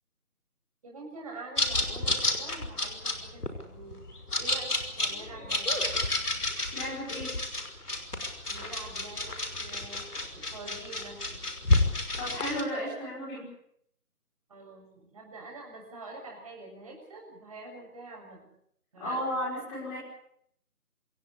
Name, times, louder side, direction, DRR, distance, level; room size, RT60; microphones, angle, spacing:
voice 1, 0.8-4.0 4.4-5.8 8.5-10.0 10.3-11.5 14.5-18.5 18.9-19.3, right 2 dB, 25° right, -1 dB, 7.1 m, -46 dB
sound 1, 1.6-12.6, left 2 dB, 80° left, 5.7 m, -30 dB
voice 2, 6.7-7.3 12.2-13.5 19.0-20.0, equal, 5° left, -5 dB, 5.4 m, -33 dB
27.0 x 17.5 x 8.6 m, 0.70 s
figure-of-eight pair, 170°, 45 cm